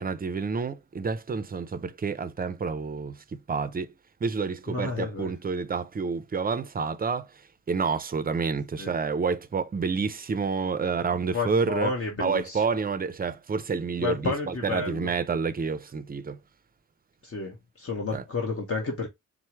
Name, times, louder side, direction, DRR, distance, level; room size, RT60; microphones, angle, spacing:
voice 1, 0.0-3.9 4.2-7.4 7.7-11.9 12.2-16.4 18.1-18.2, right 5 dB, 30° right, 0.4 m, -29 dB
voice 2, 4.7-5.3 8.8-8.9 11.3-12.6 14.0-15.1 17.2-19.1, left 4 dB, 45° left, 1.0 m, -31 dB
4.4 x 2.0 x 4.4 m
wide cardioid pair, 110°, 31 cm